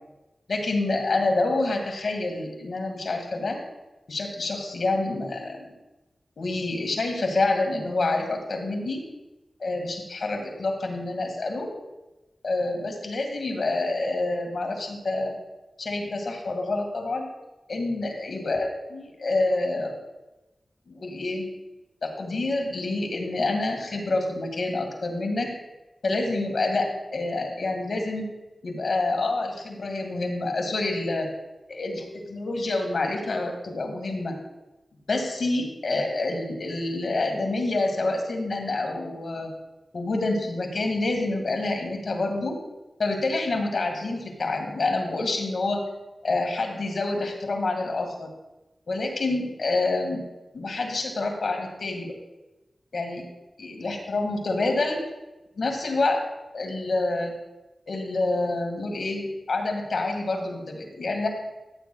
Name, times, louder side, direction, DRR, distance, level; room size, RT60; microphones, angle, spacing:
voice 1, 0.5-3.6 4.1-5.7 6.4-9.0 9.6-11.7 12.4-15.3 15.8-17.3 17.7-20.0 20.9-21.5 22.0-25.5 26.0-28.3 28.6-31.3 31.7-34.3 35.1-39.5 39.9-42.6 43.0-45.8 46.2-48.3 48.9-50.2 50.5-52.1 52.9-53.2 53.6-55.0 55.6-56.2 56.5-57.3 57.9-61.3, left 2 dB, 75° left, 3 dB, 1.8 m, -27 dB
14.0 x 8.9 x 2.3 m, 1.0 s
cardioid pair, 40°, 0 cm